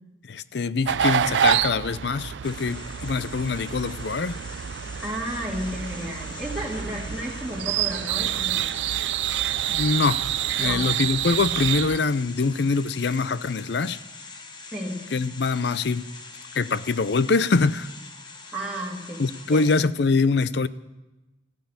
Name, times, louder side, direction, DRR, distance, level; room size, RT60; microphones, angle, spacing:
voice 1, 0.3-4.4 9.7-10.2 10.6-14.0 15.1-16.1 16.6-17.9 19.2-20.7, left 4 dB, 65° left, 0.5 m, -24 dB
sound 1, 0.9-12.0, right 10 dB, 75° right, 0.4 m, -27 dB
sound 2, 2.4-19.8, left 3 dB, 25° left, 1.1 m, -43 dB
voice 2, 5.0-8.7 10.6-10.9 14.7-15.1 18.5-19.2 19.5-19.7, right 1 dB, 5° right, 2.2 m, -32 dB
14.5 x 9.2 x 8.7 m
head